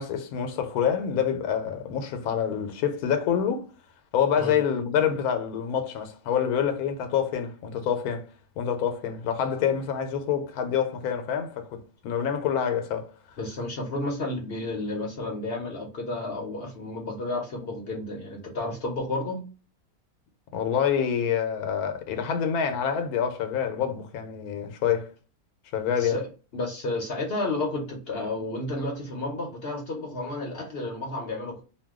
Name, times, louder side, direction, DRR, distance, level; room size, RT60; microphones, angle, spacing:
voice 1, 0.0-3.7 4.1-8.2 8.6-13.1 20.5-25.1 25.7-26.2, left 8 dB, 80° left, 1.1 m, -27 dB
voice 2, 13.4-19.5 26.0-26.3 26.5-31.6, left 2 dB, 55° left, 0.7 m, -31 dB
2.6 x 2.2 x 3.5 m
omnidirectional pair, 1.6 m